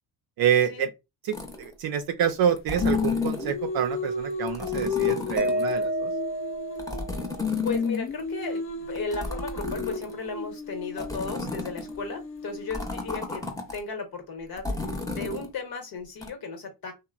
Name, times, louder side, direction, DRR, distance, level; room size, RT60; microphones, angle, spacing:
voice 1, 0.4-0.9 1.2-6.1, right 9 dB, 60° right, 0.5 m, -27 dB
sound 1, 1.3-1.7 2.6-3.5 4.5-5.8 6.8-8.2 9.0-10.3 11.0-12.0 12.7-13.8 14.6-15.5 16.2-16.3, left 2 dB, 10° left, 0.8 m, -34 dB
Singing, 2.8-7.1 7.4-13.4, left 5 dB, 30° left, 0.4 m, -32 dB
Mallet percussion, 5.4-7.6, right 1 dB, 20° right, 0.9 m, -30 dB
voice 2, 7.6-13.4 13.7-14.7 15.1-16.9, left 4 dB, 55° left, 1.1 m, -35 dB
2.9 x 2.1 x 2.3 m
supercardioid pair, 65°, 43 cm